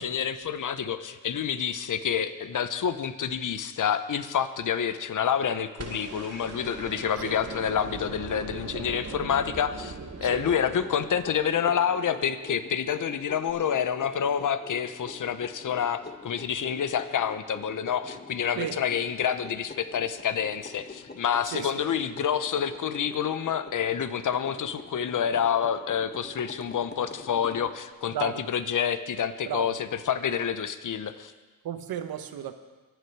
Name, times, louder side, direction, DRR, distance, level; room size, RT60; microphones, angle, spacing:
voice 1, 0.0-9.9 10.2-31.3, left 8 dB, 60° left, 11 dB, 1.0 m, -28 dB
sound 1, 5.8-12.0 13.5-13.6, right 3 dB, 45° right, 2.1 m, -40 dB
sound 2, 10.3-27.8, left 3 dB, 25° left, 1.5 m, -45 dB
voice 2, 31.6-32.5, right 10 dB, 80° right, 9 dB, 1.1 m, -34 dB
23.5 x 8.4 x 4.8 m, 1.3 s
supercardioid pair, 50°, 36 cm